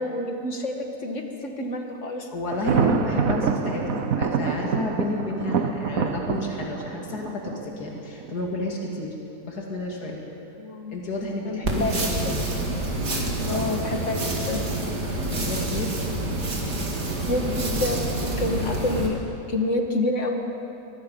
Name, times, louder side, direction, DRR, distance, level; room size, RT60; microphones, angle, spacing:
voice 1, 0.0-2.3 10.6-10.9 11.4-12.3 13.4-14.6 17.3-19.2 19.5-20.4, left 2 dB, 50° left, 3 dB, 2.1 m, -28 dB
voice 2, 2.3-9.1 9.4-10.2 10.9-12.3 13.5-13.7 15.3-15.9, left 2 dB, 75° left, -1 dB, 3.0 m, -31 dB
Thunder, 2.5-8.3, right 6 dB, 60° right, 1.3 m, -26 dB
sound 1, 11.6-19.1, right 2 dB, 80° right, 3.0 m, -27 dB
23.5 x 20.0 x 5.5 m, 2.9 s
omnidirectional pair, 1.7 m